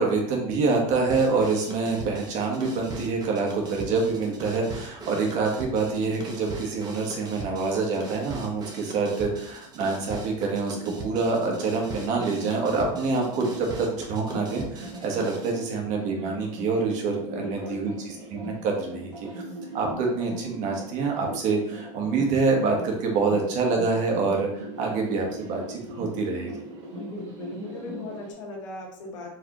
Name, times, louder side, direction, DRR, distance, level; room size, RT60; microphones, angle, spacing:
voice 1, 0.0-19.1 19.7-26.7, right 4 dB, 55° right, 1 dB, 1.3 m, -26 dB
sound 1, 1.1-15.6, right 3 dB, 25° right, 1.0 m, -40 dB
sound 2, 10.7-28.3, right 2 dB, 85° right, 1.2 m, -40 dB
voice 2, 17.2-17.9 27.0-29.4, left 2 dB, 90° left, -1 dB, 1.4 m, -38 dB
4.7 x 3.5 x 3.0 m, 0.70 s
supercardioid pair, 125°, 16 cm